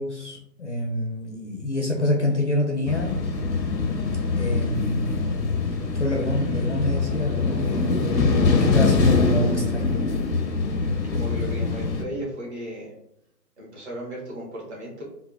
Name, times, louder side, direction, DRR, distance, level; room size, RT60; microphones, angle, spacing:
voice 1, 0.0-3.2 4.4-8.3 8.6-10.0, left 1 dB, 50° left, -1 dB, 0.4 m, -27 dB
sound 1, 2.9-12.0, left 4 dB, 90° left, 0.7 m, -23 dB
voice 2, 11.1-12.9 13.6-15.0, equal, 40° right, -6 dB, 1.2 m, -35 dB
3.4 x 2.0 x 2.3 m, 0.78 s
figure-of-eight pair, 155°, 50 cm